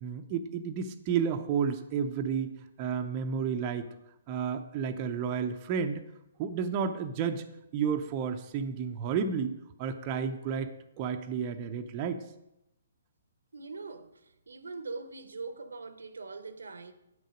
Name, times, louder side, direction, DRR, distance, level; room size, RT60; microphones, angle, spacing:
voice 1, 0.0-3.9 4.3-6.0 6.4-7.4 7.7-9.5 9.8-10.7 11.0-12.2, right 6 dB, 30° right, 0.6 m, -31 dB
voice 2, 13.5-16.9, right 3 dB, 70° right, 0.7 m, -42 dB
9.0 x 6.3 x 5.1 m
figure-of-eight pair, 130°, 0 cm